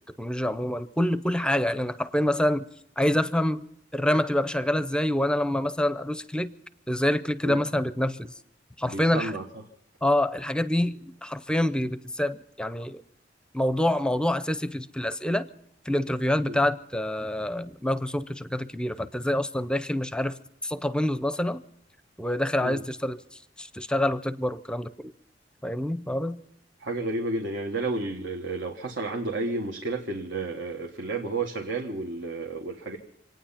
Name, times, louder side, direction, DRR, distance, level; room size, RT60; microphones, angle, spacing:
voice 1, 0.2-2.7 3.0-3.7 3.9-6.5 6.9-8.3 8.8-9.3 10.0-13.0 13.5-15.5 15.9-20.4 20.6-21.6 22.2-23.2 23.6-25.1 25.6-26.4, left 1 dB, 5° left, 14 dB, 0.6 m, -26 dB
voice 2, 8.9-9.5 16.5-16.6 22.6-22.8 26.8-33.0, right 2 dB, 75° right, 1 dB, 1.5 m, -31 dB
26.5 x 9.4 x 5.7 m, 0.74 s
head